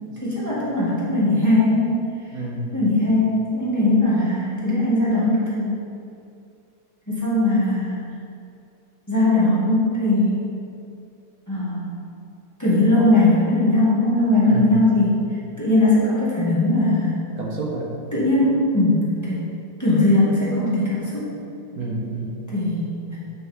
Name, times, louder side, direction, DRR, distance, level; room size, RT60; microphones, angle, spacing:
voice 1, 0.2-2.0 2.7-5.8 7.1-8.1 9.1-10.4 11.5-11.9 12.6-15.3 15.6-17.2 18.1-19.5 19.8-21.2 22.5-23.2, left 2 dB, 10° left, -8 dB, 1.6 m, -19 dB
voice 2, 2.3-2.7 14.4-14.8 17.4-17.9 18.2-18.3 21.7-22.4, right 2 dB, 65° right, -3 dB, 1.5 m, -29 dB
8.9 x 5.5 x 3.7 m, 2.5 s
omnidirectional pair, 1.7 m